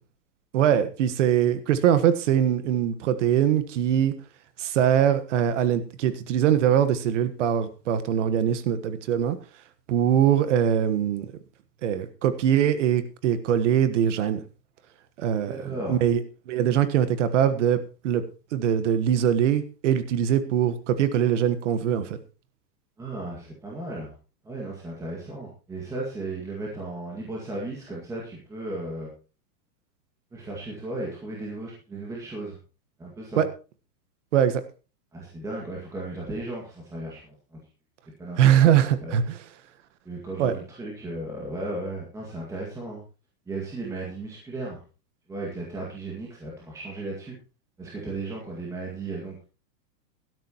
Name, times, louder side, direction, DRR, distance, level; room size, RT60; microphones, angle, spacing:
voice 1, 0.5-4.1 4.6-9.4 9.9-11.3 11.8-14.4 15.2-15.6 15.9-17.8 18.0-18.2 18.5-22.2 33.4-33.5 34.3-34.6 38.4-39.4 40.4-40.5, right 9 dB, 45° right, 13 dB, 1.4 m, -22 dB
voice 2, 15.5-16.0 23.0-24.1 24.4-29.1 30.3-32.6 33.0-33.4 35.1-37.6 38.2-38.5 38.8-39.2 40.1-43.0 43.5-44.8 45.3-47.4 47.8-49.4, right 2 dB, 5° right, -3 dB, 2.0 m, -35 dB
16.5 x 12.5 x 3.0 m, 0.33 s
supercardioid pair, 170°, 50 cm